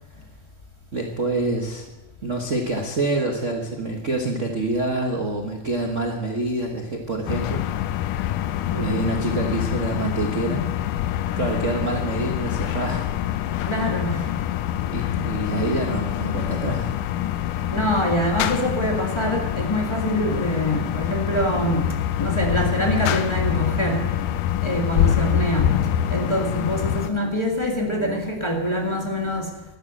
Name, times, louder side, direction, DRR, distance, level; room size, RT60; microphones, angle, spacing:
voice 1, 0.9-1.9 2.2-7.7 8.8-10.7 11.3-13.1 13.5-13.7 14.9-17.0, right 2 dB, 65° right, 1 dB, 0.7 m, -26 dB
sound 1, 7.3-27.1, left 11 dB, 85° left, 2.3 m, -25 dB
voice 2, 8.7-9.0 13.6-14.3 17.7-21.9 22.2-24.3 24.6-25.8 26.1-29.5, equal, 15° left, -1 dB, 0.9 m, -25 dB
12.5 x 11.5 x 7.6 m, 1.0 s
omnidirectional pair, 3.7 m